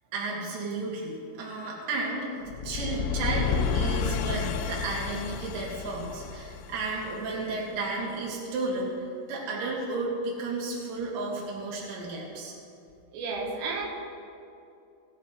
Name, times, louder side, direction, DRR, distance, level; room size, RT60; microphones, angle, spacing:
voice 1, 0.1-8.9 9.3-12.5, right 3 dB, 55° right, -4 dB, 3.5 m, -33 dB
sound 1, 2.5-7.5, left 6 dB, 85° left, 3.1 m, -31 dB
voice 2, 13.1-13.9, right 3 dB, 85° right, -2 dB, 3.9 m, -32 dB
18.5 x 9.9 x 3.3 m, 2.6 s
omnidirectional pair, 5.6 m